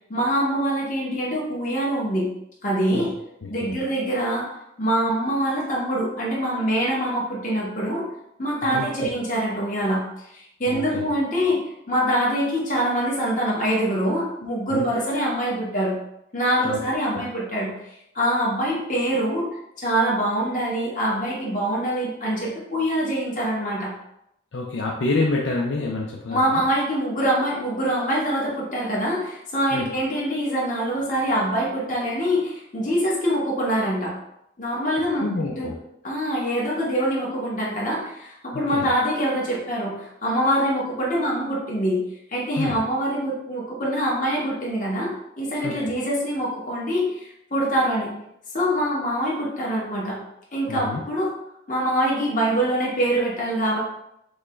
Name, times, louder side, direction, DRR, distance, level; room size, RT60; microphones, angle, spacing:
voice 1, 0.1-2.3 2.6-3.1 3.5-4.5 4.8-8.1 8.4-10.0 10.3-11.6 11.9-16.0 16.3-17.7 18.1-19.5 19.8-23.9 26.3-34.1 34.6-35.3 35.5-35.7 36.0-42.0 42.3-48.1 48.5-50.2 50.5-51.3 51.7-53.8, equal, 40° left, -5 dB, 1.4 m, -24 dB
voice 2, 3.4-3.7 8.6-9.1 10.7-11.0 14.7-15.0 16.6-16.8 17.1-17.2 24.5-26.6 29.7-29.9 35.1-35.8 38.5-38.9 42.6-42.7 45.6-45.7 50.7-51.0, left 3 dB, 80° left, -1 dB, 0.6 m, -28 dB
6.3 x 2.3 x 3.2 m, 0.81 s
head